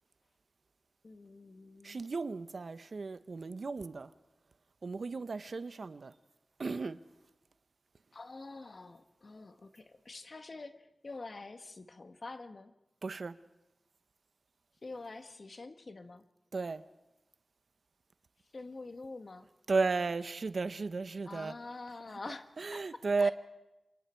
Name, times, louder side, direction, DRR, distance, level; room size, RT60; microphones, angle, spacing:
voice 1, 1.0-2.0 8.1-12.7 14.8-16.2 18.5-19.5 21.3-22.5 22.7-22.8 23.2-23.3, left 3 dB, 55° left, 1.4 m, -46 dB
voice 2, 1.8-4.1 4.8-6.1 6.6-7.0 13.0-13.4 16.5-16.8 19.7-21.5 22.6-23.3, right 4 dB, 70° right, 0.8 m, -34 dB
28.5 x 25.5 x 4.5 m
wide cardioid pair, 90°, 0 cm